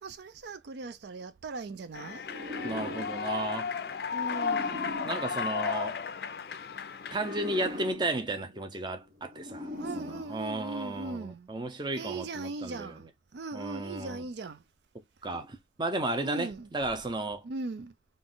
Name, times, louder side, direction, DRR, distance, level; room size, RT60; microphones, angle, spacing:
voice 1, 0.0-2.2 4.1-4.9 9.8-11.5 12.0-13.0 13.3-14.6 16.2-16.7 17.4-17.9, right 3 dB, 70° right, 0.4 m, -39 dB
Human voice / Clapping / Cheering, 1.9-7.9, left 6 dB, 55° left, 0.4 m, -34 dB
sound 1, 2.2-6.3 7.0-11.0, left 2 dB, 50° right, 1.0 m, -42 dB
voice 2, 2.6-3.7 5.0-6.0 7.1-9.7 10.0-13.0 13.5-14.2 15.2-17.4, right 2 dB, 25° right, 0.6 m, -34 dB
3.9 x 2.5 x 3.8 m
head